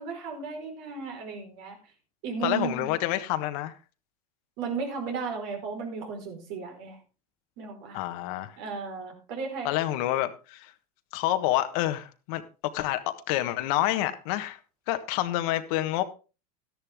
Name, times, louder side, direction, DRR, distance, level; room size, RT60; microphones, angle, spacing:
voice 1, 0.0-1.8 2.2-2.9 4.6-7.0 7.6-8.0 8.6-9.7, right 5 dB, 65° right, 4.8 m, -35 dB
voice 2, 2.4-3.7 7.9-8.5 9.6-10.7 11.1-14.6 14.9-16.0, left 14 dB, 65° left, 1.4 m, -28 dB
13.0 x 10.5 x 3.6 m
supercardioid pair, 110°, 20 cm